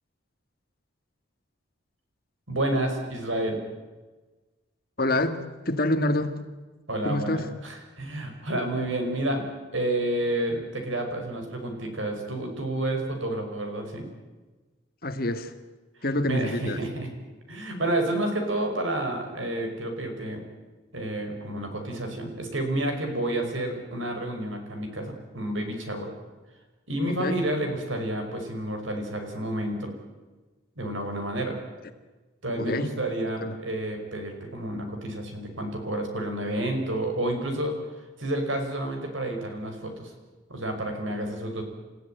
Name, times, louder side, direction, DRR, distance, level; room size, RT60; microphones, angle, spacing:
voice 1, 2.5-3.6 6.9-9.5 9.7-14.1 16.3-17.1 17.5-20.4 20.9-26.1 26.9-29.9 30.8-31.6 32.4-37.8 38.2-40.1 40.5-41.6, right 1 dB, 75° right, 4 dB, 5.6 m, -30 dB
voice 2, 5.0-6.4 7.0-7.5 15.0-15.5 16.0-16.8 27.2-27.4 32.6-33.0 33.4-33.6, left 1 dB, 45° left, 8 dB, 1.8 m, -27 dB
28.5 x 15.5 x 9.2 m, 1.2 s
head